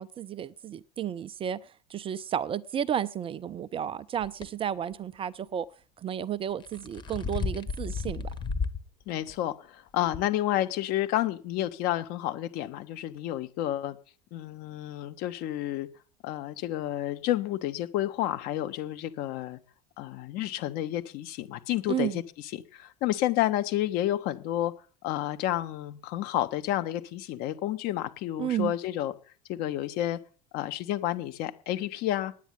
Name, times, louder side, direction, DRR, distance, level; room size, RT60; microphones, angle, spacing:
voice 1, 0.0-1.6 1.9-5.7 6.0-8.3 21.9-22.2 28.4-28.7, right 9 dB, 25° right, 0.5 m, -32 dB
sound 1, 4.2-4.5 6.5-8.8 9.3-9.4 10.1-10.2, left 5 dB, 20° left, 1.3 m, -33 dB
voice 2, 9.1-14.0 14.3-15.9 16.2-19.6 20.0-24.7 25.0-29.1 29.5-30.2 30.5-32.3, left 13 dB, 45° left, 1.2 m, -30 dB
9.3 x 9.0 x 9.4 m
figure-of-eight pair, 75°, 21 cm